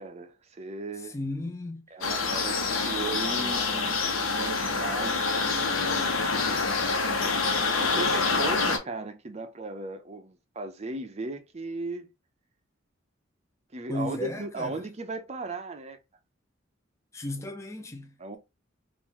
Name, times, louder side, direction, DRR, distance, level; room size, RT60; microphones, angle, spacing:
voice 1, 0.0-1.2 1.9-6.1 7.8-12.1 13.7-16.0 18.2-18.4, right 3 dB, 35° right, 0.6 m, -37 dB
voice 2, 1.0-1.8 13.9-14.8 17.1-18.4, left 1 dB, 15° left, 0.5 m, -35 dB
sound 1, 2.0-8.8, left 4 dB, 90° left, 1.0 m, -26 dB
3.7 x 2.6 x 3.0 m
head